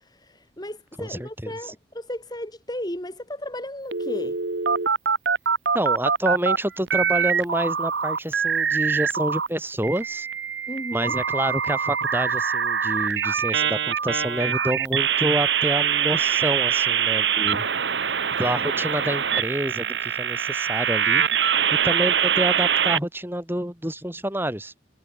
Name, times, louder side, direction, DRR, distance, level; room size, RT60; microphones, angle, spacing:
voice 1, 0.0-4.4 10.7-11.2, left 1 dB, 20° left, 5.9 m, -34 dB
voice 2, 1.0-1.5 5.7-10.3 10.9-17.7 18.4-21.2 21.8-24.7, right 1 dB, 10° right, 4.8 m, -28 dB
sound 1, 3.9-6.6 6.9-9.5 9.8-23.0, right 7 dB, 70° right, 1.3 m, -24 dB
head